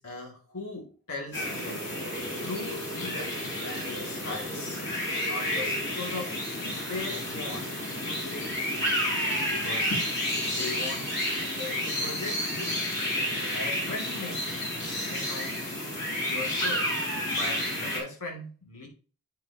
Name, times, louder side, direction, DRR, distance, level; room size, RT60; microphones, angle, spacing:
voice 1, 0.0-1.8 2.4-4.8 5.2-6.4 6.7-7.7 8.1-9.0 9.5-9.9 10.4-11.1 11.5-12.8 13.2-14.4 15.0-15.6 16.2-18.9, left 2 dB, 90° left, 2.3 m, -39 dB
sound 1, 1.3-18.0, left 1 dB, 50° left, 3.6 m, -30 dB
8.8 x 6.4 x 2.8 m
head